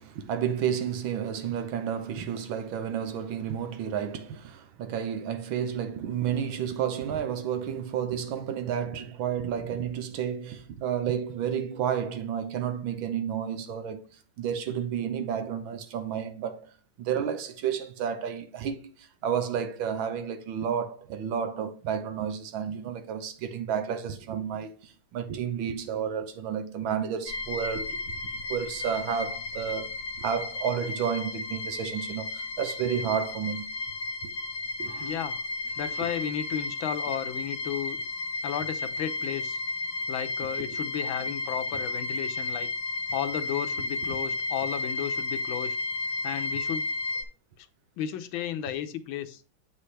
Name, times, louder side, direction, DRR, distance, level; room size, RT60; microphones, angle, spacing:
voice 1, 0.0-14.0 14.4-16.7 17.0-28.0 28.5-33.7 34.2-34.3 34.8-35.2 36.0-36.1 40.6-40.7, right 8 dB, 75° right, 1.6 m, -31 dB
sound 1, 27.3-47.2, left 2 dB, 60° left, 1.3 m, -33 dB
voice 2, 35.0-35.4 35.8-38.0 38.4-39.6 40.1-42.7 43.1-45.8 46.2-46.9 47.6-47.7 48.0-49.4, left 10 dB, 80° left, 1.5 m, -33 dB
8.1 x 5.6 x 3.2 m
omnidirectional pair, 2.3 m